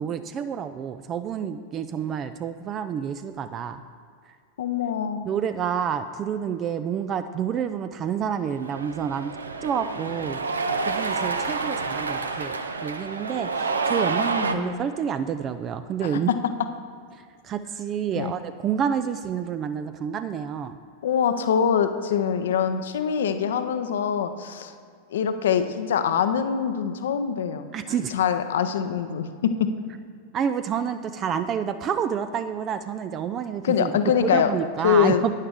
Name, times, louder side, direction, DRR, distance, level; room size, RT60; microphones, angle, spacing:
voice 1, 0.0-3.8 4.3-4.4 5.3-9.3 9.6-10.6 10.8-16.3 17.1-20.8 27.7-28.1 30.3-33.9 34.2-35.3, right 8 dB, 30° right, 11 dB, 0.4 m, -29 dB
voice 2, 4.6-5.2 14.4-14.9 16.0-16.2 18.1-18.3 21.0-24.7 25.1-29.7 33.6-34.5 34.8-35.2, left 8 dB, 60° left, 9 dB, 0.7 m, -24 dB
Cheering, 8.5-14.5, right 4 dB, 75° right, 0.6 m, -28 dB
12.0 x 9.8 x 3.6 m, 2.2 s
figure-of-eight pair, 90°, 0 cm